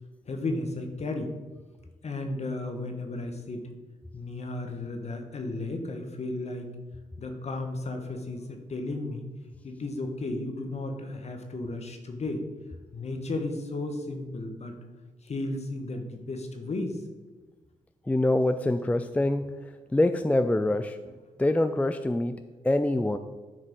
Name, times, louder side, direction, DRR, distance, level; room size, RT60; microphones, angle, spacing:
voice 1, 0.3-1.3 2.0-3.7 4.1-6.7 7.2-9.2 9.6-12.4 12.9-14.7 15.2-17.0, left 2 dB, 50° left, 5 dB, 1.4 m, -34 dB
voice 2, 18.1-21.0 21.4-23.2, left 1 dB, 10° left, 10 dB, 0.4 m, -25 dB
9.7 x 4.8 x 4.6 m, 1.3 s
supercardioid pair, 50°, 15 cm